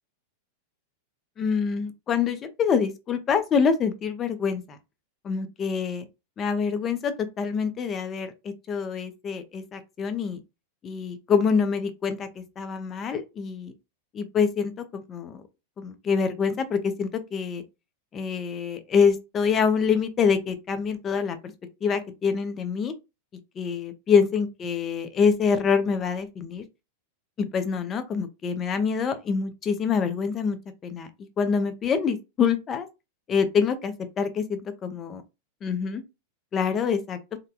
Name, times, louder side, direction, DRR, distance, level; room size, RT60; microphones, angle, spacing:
voice 1, 1.4-4.8 5.2-6.1 6.4-10.4 10.8-13.7 14.1-15.4 15.8-17.6 18.1-21.5 21.8-22.9 23.6-26.6 27.4-30.6 30.8-31.1 31.4-32.9 33.3-35.2 35.6-36.0 36.5-37.2, left 6 dB, 25° left, 0.6 m, -26 dB
3.7 x 2.2 x 2.8 m
supercardioid pair, 140°, 0 cm